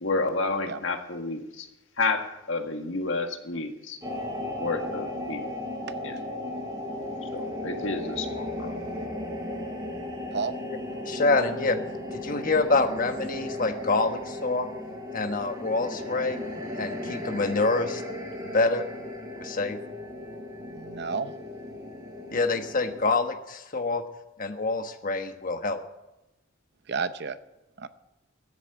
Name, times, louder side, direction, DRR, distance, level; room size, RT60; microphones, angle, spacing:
voice 1, 0.0-1.7 2.0-4.0 4.6-5.4 6.0-6.2 7.3-8.7, left 3 dB, 75° left, 1.7 m, -30 dB
sound 1, 4.0-23.0, left 1 dB, 20° right, 4.8 m, -36 dB
voice 2, 11.0-11.8 12.1-14.7 15.1-16.4 16.8-18.0 18.5-18.9 19.4-19.8 22.3-24.0 24.4-25.8, left 3 dB, 45° left, 1.2 m, -26 dB
voice 3, 20.7-21.3 26.9-27.4 27.8-27.9, right 5 dB, 60° right, 0.7 m, -31 dB
14.0 x 8.3 x 8.9 m
head